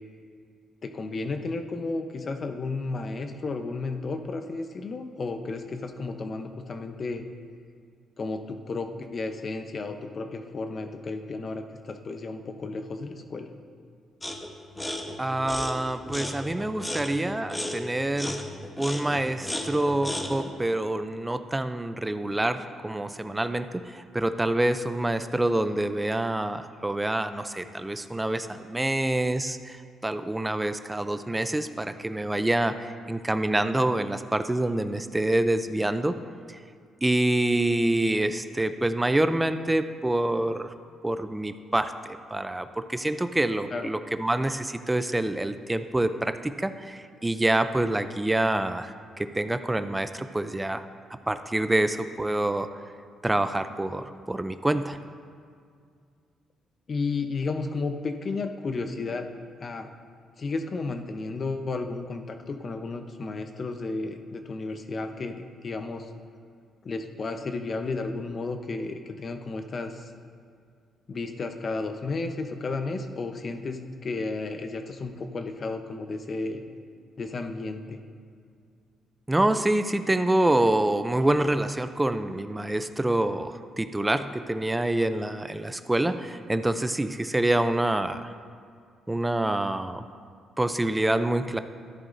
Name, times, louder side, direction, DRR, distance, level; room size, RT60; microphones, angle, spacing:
voice 1, 0.8-7.3 8.2-13.5 43.7-43.9 56.9-59.3 59.6-59.9 60.4-66.1 66.8-70.1 71.1-76.6 77.2-78.0, left 3 dB, 45° left, 6 dB, 0.7 m, -33 dB
sound 1, 14.2-14.5 14.8-20.5, left 1 dB, 10° left, 1.0 m, -35 dB
voice 2, 15.2-18.5 18.8-36.2 36.5-36.6 37.0-40.7 41.0-50.8 51.3-52.7 53.2-55.0 79.3-88.3 89.1-90.0 90.6-91.6, right 1 dB, 15° right, 10 dB, 0.4 m, -26 dB
13.0 x 10.5 x 2.6 m, 2.2 s
cardioid pair, 90°, 0 cm